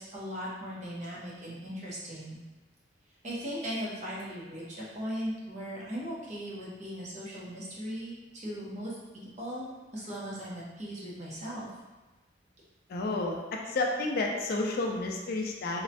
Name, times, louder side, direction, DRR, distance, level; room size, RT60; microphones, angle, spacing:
voice 1, 0.0-2.4 3.2-11.7, equal, 40° right, -6 dB, 0.7 m, -38 dB
voice 2, 12.9-15.8, left 2 dB, 50° left, 0 dB, 0.3 m, -31 dB
3.0 x 2.1 x 2.7 m, 1.2 s
head